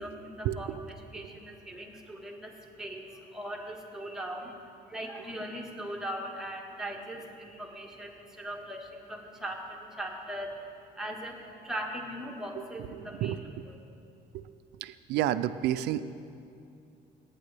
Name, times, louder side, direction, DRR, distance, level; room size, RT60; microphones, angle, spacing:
voice 1, 0.0-13.4 13.6-13.8, right 1 dB, 5° right, -1 dB, 1.5 m, -40 dB
voice 2, 12.9-13.6 14.3-14.5 14.8-16.0, right 12 dB, 85° right, 13 dB, 0.4 m, -30 dB
18.5 x 9.1 x 3.4 m, 2.6 s
cardioid pair, 110°, 17 cm